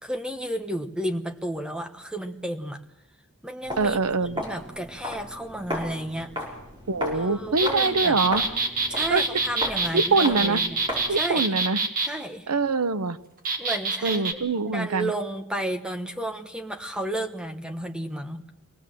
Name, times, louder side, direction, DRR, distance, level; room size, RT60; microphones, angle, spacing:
voice 1, 0.0-2.8 3.4-4.0 4.4-6.3 7.1-8.2 8.9-10.8 11.1-11.5 12.0-12.5 13.6-14.2 14.6-18.5, right 1 dB, 5° right, 5 dB, 1.2 m, -32 dB
Walk footsteps, 3.6-11.3, left 1 dB, 20° right, 5.8 m, -36 dB
voice 2, 3.8-4.4 6.9-8.4 9.1-9.2 9.9-10.6 11.1-11.8 12.5-13.2 14.0-15.1, right 3 dB, 90° right, 12 dB, 0.9 m, -24 dB
sound 1, 7.6-12.1 13.5-14.3, right 3 dB, 40° right, 2.0 m, -26 dB
24.5 x 18.0 x 7.7 m, 0.93 s
head